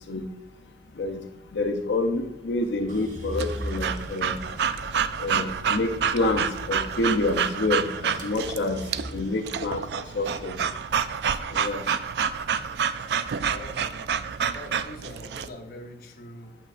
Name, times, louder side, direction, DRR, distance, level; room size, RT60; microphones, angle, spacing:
voice 1, 1.5-4.4 5.2-8.8 9.1-10.5 11.5-11.9, left 2 dB, 85° left, 3 dB, 0.6 m, -27 dB
sound 1, 2.9-13.1 13.5-14.3, equal, 45° right, 1.0 m, -40 dB
Breathing / Dog, 3.4-15.5, right 7 dB, 70° right, 0.3 m, -29 dB
voice 2, 13.3-14.0 14.4-16.6, left 1 dB, 55° left, 3 dB, 0.8 m, -43 dB
8.7 x 6.3 x 2.5 m, 0.98 s
head